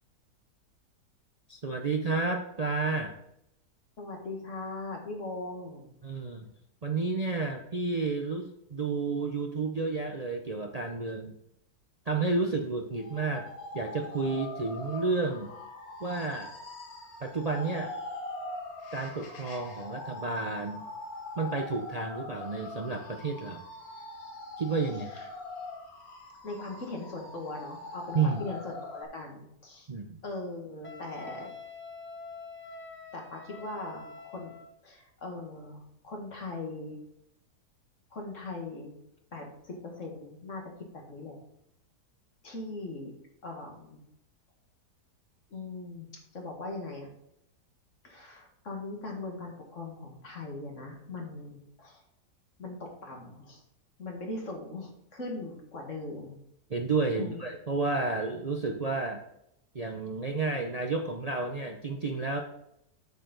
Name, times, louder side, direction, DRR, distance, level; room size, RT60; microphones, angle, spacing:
voice 1, 1.5-3.1 6.0-6.4 6.8-11.3 12.1-13.5 13.7-15.5 16.0-16.5 17.2-17.9 18.9-20.9 21.4-23.6 24.6-25.1 28.1-28.4 29.9-30.2 56.7-59.2 59.7-62.4, right 3 dB, 50° right, 3 dB, 0.4 m, -31 dB
voice 2, 4.0-5.9 25.1-25.3 26.4-29.9 30.2-31.5 33.1-34.5 34.8-37.0 38.1-38.9 39.3-40.6 40.9-41.4 42.4-43.1 43.4-44.0 45.5-46.1 46.3-47.1 48.0-52.0 52.6-53.6 54.0-56.4 57.1-57.4, left 2 dB, 50° left, 1 dB, 2.1 m, -40 dB
sound 1, 12.9-29.0, left 2 dB, 65° left, 1.7 m, -42 dB
Wind instrument woodwind instrument, 30.8-34.7, left 3 dB, 10° left, 0.6 m, -45 dB
8.3 x 6.8 x 4.0 m, 0.79 s
omnidirectional pair, 1.7 m